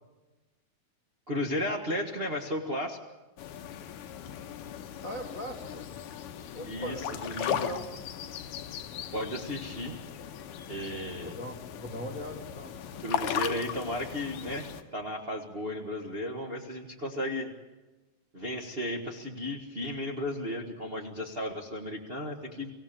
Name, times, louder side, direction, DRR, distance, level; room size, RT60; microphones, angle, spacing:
voice 1, 1.3-3.0 6.6-7.7 9.1-10.0 10.7-11.4 13.0-17.5 18.3-22.7, left 1 dB, 55° right, 1 dB, 0.6 m, -34 dB
sound 1, 3.4-14.8, left 9 dB, 70° left, 2.6 m, -38 dB
voice 2, 5.0-5.9 6.5-7.9 11.2-12.7, equal, 30° left, 1 dB, 1.7 m, -40 dB
24.5 x 16.5 x 8.8 m, 1.1 s
omnidirectional pair, 4.0 m